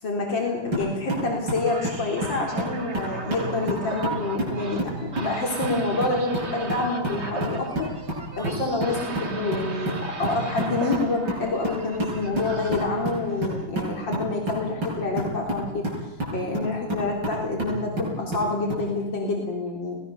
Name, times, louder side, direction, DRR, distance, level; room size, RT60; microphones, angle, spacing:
voice 1, 0.0-7.9 8.4-15.9 16.3-20.0, left 3 dB, 90° left, 0 dB, 4.3 m, -27 dB
sound 1, 0.7-18.9, right 1 dB, 75° right, 9.0 m, -31 dB
sound 2, 1.6-13.7, right 3 dB, 35° right, 2.0 m, -37 dB
25.0 x 18.5 x 7.0 m, 0.93 s
omnidirectional pair, 2.0 m